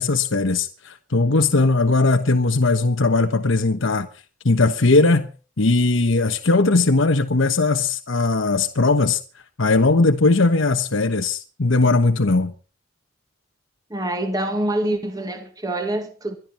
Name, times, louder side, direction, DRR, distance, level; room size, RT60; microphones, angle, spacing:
voice 1, 0.0-4.1 4.4-5.3 5.6-9.2 9.6-12.5, left 3 dB, 75° left, 1.1 m, -19 dB
voice 2, 13.9-16.4, right 1 dB, 20° right, 1.8 m, -25 dB
21.5 x 12.5 x 4.3 m
head